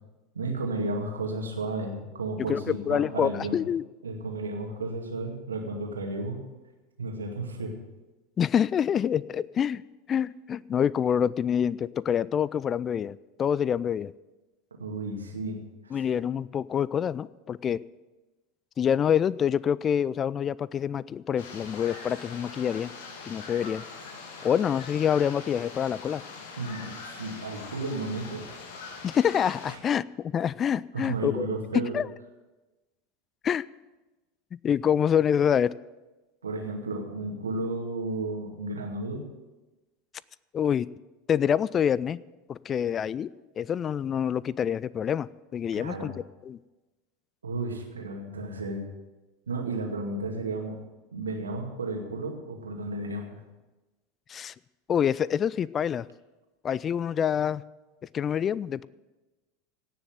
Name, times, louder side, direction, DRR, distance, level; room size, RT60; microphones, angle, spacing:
voice 1, 0.3-3.6 4.0-6.4 7.0-7.7 14.8-15.6 15.8-16.0 26.6-28.5 29.7-29.8 30.9-32.0 36.4-39.2 45.7-46.1 47.4-48.8 49.5-50.8 51.1-53.4, right 2 dB, 80° right, 2 dB, 2.3 m, -33 dB
voice 2, 2.5-3.8 8.4-9.8 10.1-14.1 15.9-17.8 18.8-22.9 23.2-23.8 24.4-26.2 29.0-31.5 31.9-32.1 33.4-33.7 34.6-35.7 40.5-40.9 41.3-42.2 42.5-43.3 43.6-46.1 46.4-46.6 54.3-54.5 54.9-56.1 56.6-57.6 58.1-58.9, left 8 dB, 30° left, 22 dB, 0.3 m, -26 dB
sound 1, 21.4-29.8, left 4 dB, 60° left, 2.1 m, -42 dB
17.0 x 6.8 x 7.9 m, 1.1 s
figure-of-eight pair, 80°, 0 cm